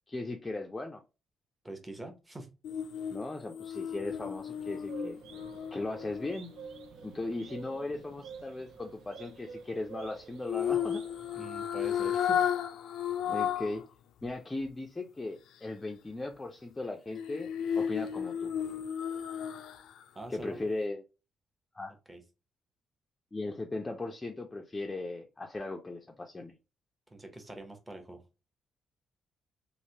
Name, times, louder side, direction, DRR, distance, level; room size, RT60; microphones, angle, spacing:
voice 1, 0.1-1.0 3.1-5.2 5.7-6.5 7.0-11.0 13.3-13.8 14.2-17.5 17.7-18.5 20.3-21.0 21.8-22.0 23.3-26.5, left 2 dB, 15° left, 2 dB, 0.4 m, -37 dB
voice 2, 1.6-2.5 11.3-12.4 20.1-20.7 22.1-22.2 27.1-28.2, right 1 dB, 15° right, 5 dB, 0.7 m, -44 dB
sound 1, 2.6-6.9 10.5-13.8 14.2-14.3 17.1-20.0 20.4-20.5, left 9 dB, 90° left, 0.3 m, -33 dB
sound 2, 4.6-11.4, right 6 dB, 80° right, 0.4 m, -49 dB
3.2 x 2.5 x 2.7 m, 0.30 s
cardioid pair, 130°, 0 cm